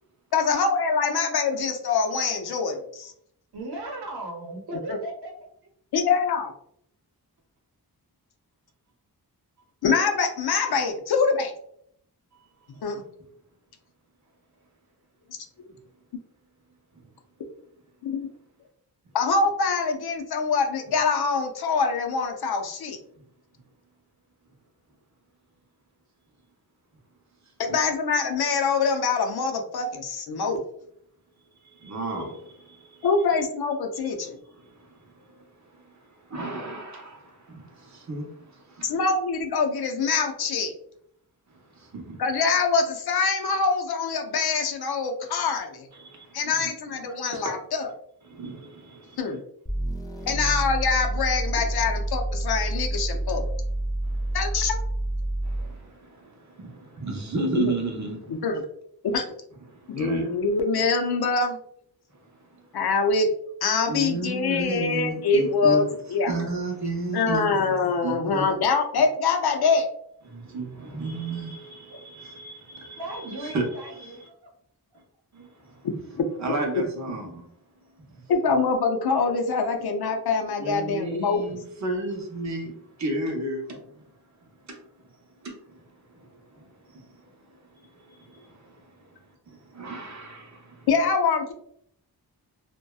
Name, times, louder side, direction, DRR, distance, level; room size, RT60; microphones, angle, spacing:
voice 1, 0.3-3.1 4.9-5.0 5.9-6.5 9.8-11.5 12.8-13.0 18.0-18.3 19.1-23.0 27.6-30.6 33.0-34.4 38.8-40.7 42.2-45.9 46.3-47.9 49.2-49.4 50.3-53.5 54.3-54.8 57.6-57.7 58.3-58.6 59.1-59.3 59.9-61.6 62.7-63.3 63.6-65.8 66.1-66.3 67.1-69.9 76.2-76.3 78.3-81.4 90.9-91.5, left 4 dB, 75° left, 4 dB, 0.5 m, -24 dB
voice 2, 3.5-5.5 71.9-72.0 73.0-74.5, right 2 dB, 90° right, 0 dB, 0.8 m, -37 dB
voice 3, 31.7-33.1 34.5-38.9 41.5-42.2 46.0-46.6 47.3-47.5 48.3-49.2 51.6-51.7 54.0-54.4 55.4-58.4 59.7-60.4 62.1-62.7 63.9-66.0 66.3-68.4 70.2-74.3 75.3-75.9 76.4-77.5 78.1-78.2 80.6-82.7 83.0-84.0 84.4-84.8 85.4-85.8 86.1-87.3 87.7-89.2 89.5-90.9, right 2 dB, 45° right, 1 dB, 0.7 m, -34 dB
sound 1, 49.7-55.8, right 1 dB, 10° left, 0.4 m, -28 dB
2.6 x 2.1 x 2.2 m, 0.69 s
wide cardioid pair, 125°, 38 cm